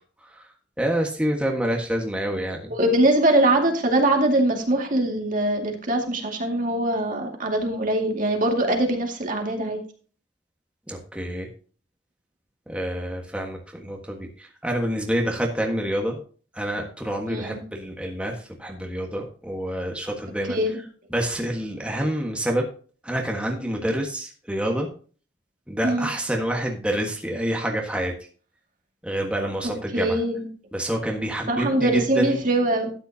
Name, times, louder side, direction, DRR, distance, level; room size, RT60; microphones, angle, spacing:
voice 1, 0.8-2.7 10.9-11.5 12.7-16.2 16.5-20.6 21.1-22.7 23.0-24.9 25.7-28.1 29.0-30.2 30.7-32.4, right 1 dB, 5° right, 0 dB, 1.5 m, -27 dB
voice 2, 2.7-9.8 17.3-17.6 20.5-20.8 25.8-26.1 29.9-30.5 31.5-32.9, right 1 dB, 50° right, 2 dB, 2.2 m, -22 dB
12.5 x 9.5 x 2.8 m, 0.40 s
head